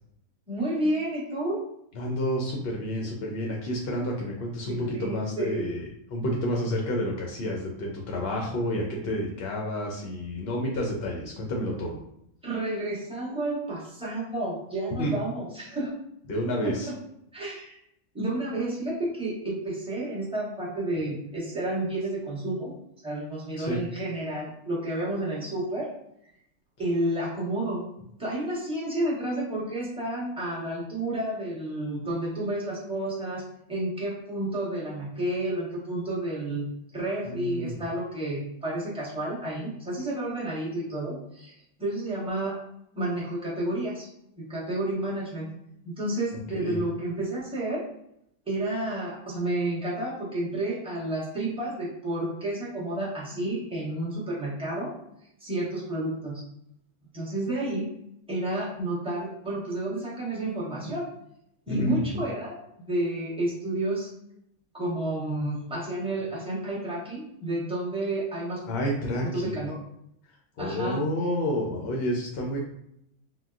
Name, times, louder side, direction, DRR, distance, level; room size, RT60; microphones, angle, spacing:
voice 1, 0.5-1.6 4.6-5.8 12.4-15.9 16.6-16.9 17.3-17.8 18.1-22.7 23.0-25.9 26.8-27.9 28.2-36.7 36.9-41.5 41.8-42.6 42.9-44.1 44.4-45.5 45.8-47.8 48.5-54.9 55.4-56.4 57.1-57.9 58.3-61.1 61.7-62.6 62.9-64.1 64.7-68.6 69.2-69.8 70.6-71.0, right 1 dB, 5° right, -8 dB, 0.8 m, -30 dB
voice 2, 1.9-5.8 6.1-12.0 15.0-15.1 16.3-16.9 23.6-23.8 37.3-37.7 46.5-46.8 61.7-62.0 68.7-69.6 70.6-72.6, equal, 65° left, 0 dB, 0.6 m, -29 dB
3.7 x 2.1 x 2.4 m, 0.75 s
omnidirectional pair, 1.5 m